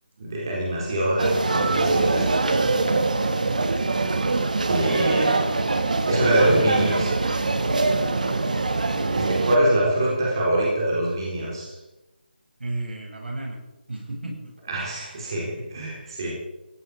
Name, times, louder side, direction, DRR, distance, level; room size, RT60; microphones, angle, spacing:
voice 1, 0.2-2.3 4.7-5.6 6.1-7.2 9.0-11.8 14.7-16.3, right 1 dB, 25° right, -4 dB, 3.9 m, -24 dB
sound 1, 1.2-9.6, right 3 dB, 50° right, 1.6 m, -23 dB
voice 2, 2.3-2.8 3.3-3.5 7.5-8.1 12.6-13.6 13.9-14.5 15.6-15.8, right 2 dB, 75° right, 0 dB, 7.7 m, -33 dB
17.0 x 13.5 x 5.2 m, 1.0 s
figure-of-eight pair, 180°, 6 cm